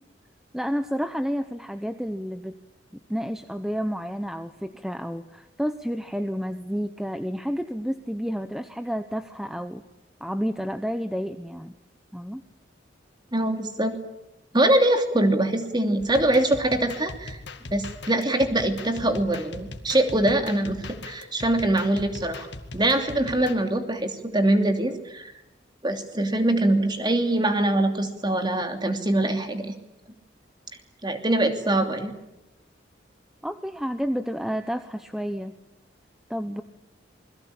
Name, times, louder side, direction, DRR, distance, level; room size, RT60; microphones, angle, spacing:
voice 1, 0.5-2.6 3.1-9.8 10.2-11.7 12.1-12.4 33.4-35.5 36.3-36.6, equal, ahead, 9 dB, 0.9 m, -30 dB
voice 2, 13.3-14.0 14.5-17.4 17.7-22.5 22.7-25.3 25.8-29.7 31.0-32.1, right 1 dB, 25° right, 6 dB, 2.9 m, -23 dB
sound 1, 16.0-23.5, left 2 dB, 65° left, 2.3 m, -40 dB
27.5 x 22.0 x 8.8 m, 0.91 s
head